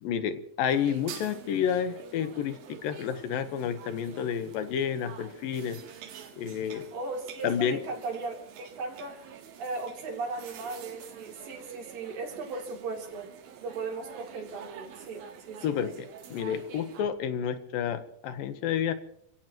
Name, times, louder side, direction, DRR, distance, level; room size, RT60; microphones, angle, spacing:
voice 1, 0.0-5.8 6.4-6.8 7.4-7.8 15.6-18.9, left 8 dB, 80° left, 10 dB, 2.8 m, -30 dB
sound 1, 0.7-17.0, right 8 dB, 90° right, 3.4 m, -48 dB
voice 2, 6.9-13.3 13.6-15.8, right 3 dB, 75° right, 1 dB, 4.7 m, -37 dB
28.5 x 17.0 x 3.0 m, 0.73 s
omnidirectional pair, 4.1 m